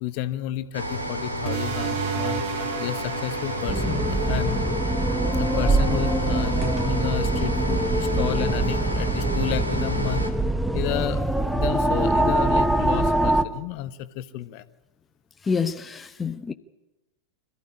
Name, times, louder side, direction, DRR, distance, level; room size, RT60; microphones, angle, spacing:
voice 1, 0.0-2.4 2.8-4.6 5.2-10.3 10.7-11.2 11.5-14.6, left 14 dB, 45° left, 1.2 m, -31 dB
sound 1, 0.7-10.3, equal, 85° right, 2.9 m, -31 dB
sound 2, 1.4-6.7, right 7 dB, 45° right, 1.8 m, -34 dB
sound 3, 3.7-13.4, right 2 dB, 5° right, 1.2 m, -23 dB
voice 2, 15.4-16.5, left 5 dB, 15° left, 0.9 m, -27 dB
26.0 x 15.0 x 10.0 m
figure-of-eight pair, 90°, 0 cm